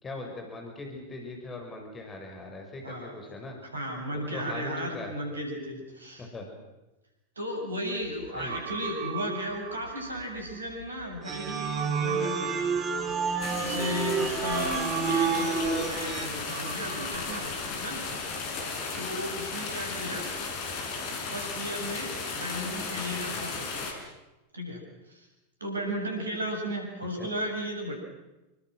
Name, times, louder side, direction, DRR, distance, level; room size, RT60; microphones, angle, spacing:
voice 1, 0.0-3.6 4.1-5.1 6.2-6.5 8.3-8.6 20.1-20.3, left 2 dB, 20° left, 2 dB, 5.9 m, -40 dB
voice 2, 2.8-3.1 3.7-6.3 7.4-12.8 13.1-18.2 18.9-20.3 21.3-24.0 24.5-24.8 25.1-25.3 25.6-28.0, equal, 75° right, 3 dB, 7.7 m, -35 dB
sound 1, 8.0-17.5, right 8 dB, 60° right, 3.9 m, -39 dB
sound 2, 11.2-16.3, right 5 dB, 25° right, 2.8 m, -29 dB
sound 3, 13.4-23.9, left 4 dB, 45° left, 5.7 m, -35 dB
28.0 x 25.0 x 6.3 m, 1.0 s
figure-of-eight pair, 90°, 0 cm